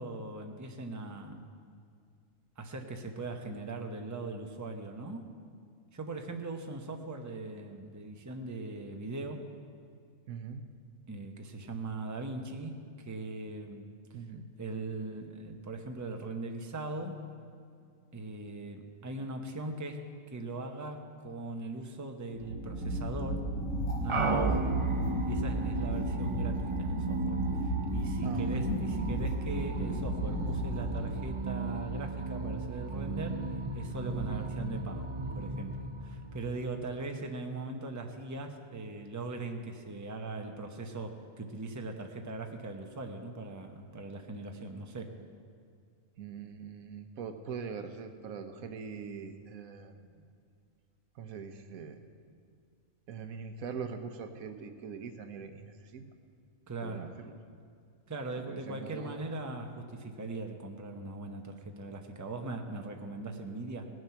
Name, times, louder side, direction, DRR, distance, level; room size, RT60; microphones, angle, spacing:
voice 1, 0.0-1.4 2.6-5.3 5.9-9.5 11.1-13.9 14.6-17.3 18.1-20.0 20.3-23.5 24.0-24.6 25.2-45.1 56.7-57.1 58.1-63.9, right 2 dB, 15° right, 4 dB, 0.7 m, -40 dB
voice 2, 10.3-10.6 14.1-14.5 24.4-24.8 28.2-29.1 34.3-34.5 46.2-50.3 51.1-52.0 53.1-56.1 56.8-57.3 58.5-59.2, right 6 dB, 85° right, 8 dB, 1.3 m, -42 dB
sound 1, 22.4-31.5, right 1 dB, 85° left, 1.8 m, -34 dB
sound 2, 24.1-37.0, right 3 dB, 50° right, 0.3 m, -35 dB
19.0 x 7.8 x 5.8 m, 2.3 s
omnidirectional pair, 1.4 m